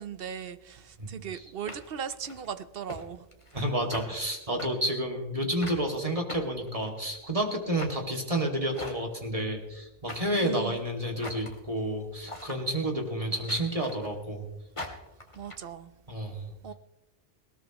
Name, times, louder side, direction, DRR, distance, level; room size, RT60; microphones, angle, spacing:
voice 1, 0.0-3.3 10.4-10.8 15.3-15.9 16.6-16.7, right 7 dB, 65° right, 0.9 m, -38 dB
sound 1, 0.7-0.8 1.7-2.5 2.9-3.0 3.3-3.7 3.9-4.1 4.6-4.7 5.6-5.8 6.3-7.2 7.8-8.0 8.7-9.2 10.1-10.4 11.2-11.6 12.3-12.6 13.5-14.2 14.8-15.6, left 1 dB, 30° left, 2.0 m, -41 dB
voice 2, 3.5-14.4 16.1-16.5, right 1 dB, 35° right, 2.5 m, -30 dB
20.0 x 17.5 x 3.1 m
omnidirectional pair, 1.0 m